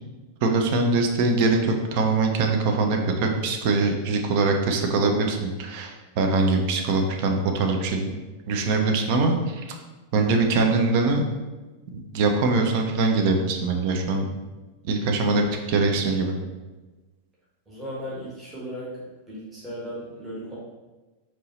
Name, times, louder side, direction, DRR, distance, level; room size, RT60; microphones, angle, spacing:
voice 1, 0.4-8.1 8.5-9.8 10.1-11.2 12.1-14.3 14.8-16.3, right 3 dB, 45° right, 3 dB, 0.5 m, -23 dB
voice 2, 17.7-18.9 19.3-20.6, equal, 20° right, -7 dB, 1.4 m, -36 dB
4.5 x 3.0 x 3.0 m, 1.2 s
figure-of-eight pair, 90°, 0 cm